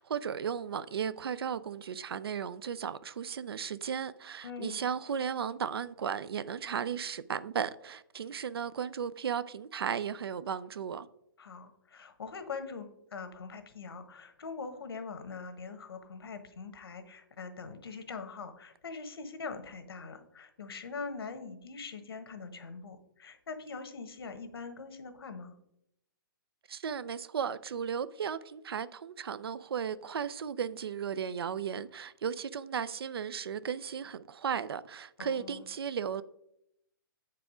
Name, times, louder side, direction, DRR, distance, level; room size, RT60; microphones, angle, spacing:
voice 1, 0.0-11.1 26.7-36.2, right 7 dB, 80° right, 0.5 m, -35 dB
voice 2, 4.4-4.8 11.4-25.5 35.2-35.7, left 4 dB, 80° left, 1.3 m, -43 dB
7.9 x 4.8 x 4.9 m
hypercardioid pair, 160°, 12 cm